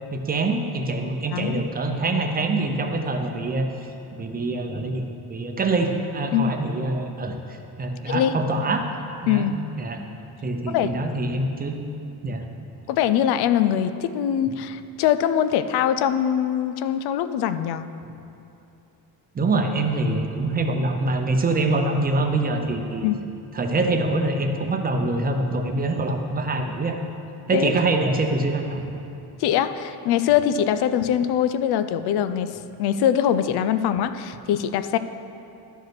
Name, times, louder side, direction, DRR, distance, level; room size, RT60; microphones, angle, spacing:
voice 1, 0.1-5.0 5.3-8.9 9.2-9.5 9.8-10.0 10.4-11.8 12.2-12.4 19.3-23.1 23.5-27.0 27.5-28.8, right 2 dB, 25° right, 4 dB, 0.6 m, -25 dB
voice 2, 1.3-1.6 6.3-6.6 8.1-8.4 9.3-9.5 10.7-11.0 12.9-17.9 23.0-23.2 27.5-27.7 29.4-35.0, left 10 dB, 80° left, 11 dB, 0.6 m, -22 dB
12.0 x 5.3 x 6.0 m, 2.7 s
cardioid pair, 155°, 38 cm